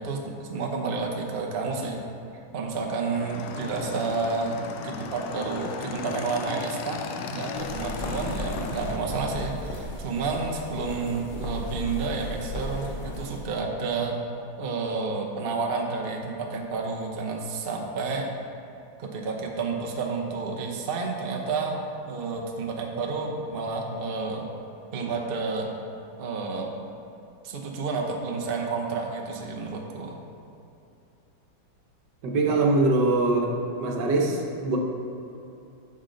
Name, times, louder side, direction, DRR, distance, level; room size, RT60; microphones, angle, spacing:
voice 1, 0.0-2.0 2.5-7.0 7.3-14.1 14.6-18.3 19.0-21.7 22.0-24.5 24.9-25.7 26.2-26.7 27.4-30.2 32.5-32.8, right 4 dB, 50° right, 1 dB, 0.7 m, -30 dB
Motorcycle / Engine, 3.1-9.0, left 5 dB, 75° left, 1.2 m, -36 dB
sound 1, 7.5-13.6, left 1 dB, 45° left, 1.2 m, -36 dB
voice 2, 32.2-33.5 33.8-34.8, right 2 dB, 70° right, 0 dB, 1.5 m, -23 dB
9.6 x 6.2 x 3.8 m, 2.6 s
omnidirectional pair, 2.0 m